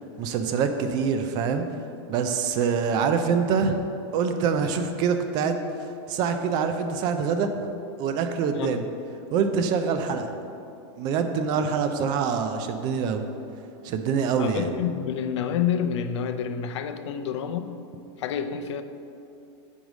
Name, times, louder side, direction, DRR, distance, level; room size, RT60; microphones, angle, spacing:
voice 1, 0.2-1.6 2.1-3.8 4.1-5.6 6.1-7.5 8.0-8.8 9.3-10.3 11.0-13.2 13.8-14.7, right 6 dB, 30° right, 7 dB, 0.4 m, -25 dB
voice 2, 8.5-8.9 14.4-17.8 18.2-18.8, left 8 dB, 80° left, 9 dB, 0.5 m, -28 dB
5.3 x 4.7 x 6.2 m, 2.6 s
supercardioid pair, 160°, 15 cm